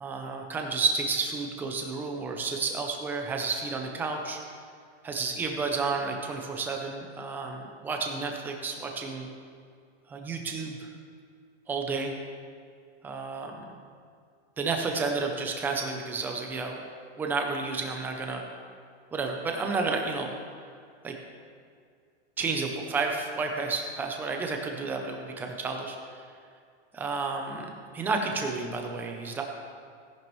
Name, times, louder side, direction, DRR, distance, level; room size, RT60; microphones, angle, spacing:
voice 1, 0.0-4.4 5.0-9.3 10.1-10.9 11.7-12.1 13.0-13.7 14.6-16.8 17.2-18.4 19.1-20.3 21.0-21.1 22.4-26.3 26.9-29.4, right 4 dB, 5° right, 2 dB, 0.4 m, -31 dB
17.0 x 10.5 x 3.0 m, 2.2 s
supercardioid pair, 165°, 34 cm